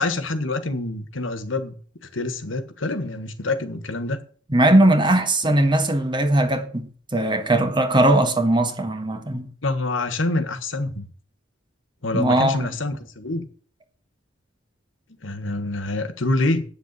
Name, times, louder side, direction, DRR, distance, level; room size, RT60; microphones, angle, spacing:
voice 1, 0.0-1.8 2.1-4.2 9.6-11.1 12.0-13.5 15.2-16.6, left 2 dB, 85° left, 1.6 m, -26 dB
voice 2, 4.5-9.5 12.1-12.7, right 1 dB, 25° right, 1.6 m, -19 dB
9.3 x 7.0 x 8.2 m
head